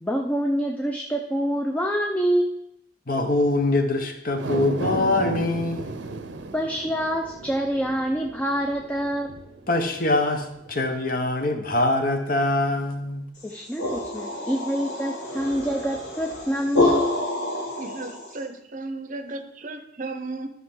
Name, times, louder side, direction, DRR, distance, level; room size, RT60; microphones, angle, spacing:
voice 1, 0.0-2.5 6.5-9.4 13.4-17.0, equal, 10° left, 1 dB, 0.5 m, -26 dB
voice 2, 3.1-5.8 9.7-13.2, left 2 dB, 50° left, 6 dB, 1.0 m, -23 dB
sound 1, 4.3-10.8 11.2-11.3, right 2 dB, 80° right, 0.7 m, -35 dB
sound 2, 13.4-18.4, left 2 dB, 70° left, 2.5 m, -27 dB
voice 3, 17.8-20.5, right 2 dB, 45° right, 9 dB, 0.7 m, -35 dB
12.5 x 5.6 x 3.8 m, 0.84 s
head